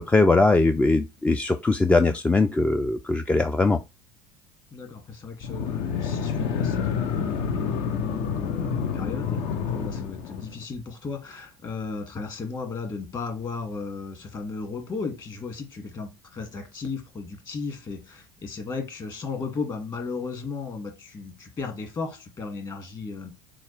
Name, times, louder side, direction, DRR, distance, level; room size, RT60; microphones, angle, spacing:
voice 1, 0.0-3.8, left 3 dB, 10° left, 0.3 m, -21 dB
voice 2, 4.7-23.3, left 4 dB, 35° left, 1.8 m, -35 dB
sound 1, 5.4-10.6, left 6 dB, 55° left, 0.6 m, -28 dB
7.0 x 2.3 x 3.2 m
figure-of-eight pair, 65°, 12 cm